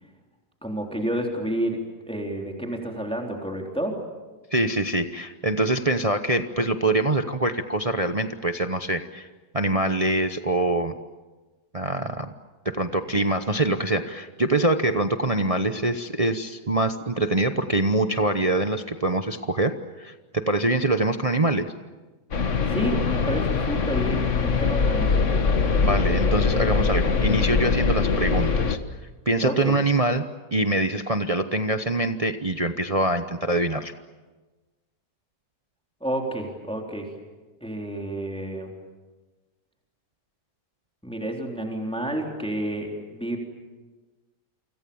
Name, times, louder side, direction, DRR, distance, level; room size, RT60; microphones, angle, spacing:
voice 1, 0.6-4.0 22.7-25.2 29.4-29.8 36.0-37.1 37.6-38.7 41.0-43.4, right 1 dB, 5° left, 1 dB, 3.7 m, -30 dB
voice 2, 4.5-9.3 9.5-10.9 11.7-12.3 12.6-21.7 25.8-28.8 29.3-30.2 30.5-33.9, right 2 dB, 30° right, 8 dB, 0.7 m, -24 dB
sound 1, 22.3-28.8, left 5 dB, 45° left, 1.6 m, -22 dB
29.0 x 25.0 x 7.1 m, 1.2 s
omnidirectional pair, 1.9 m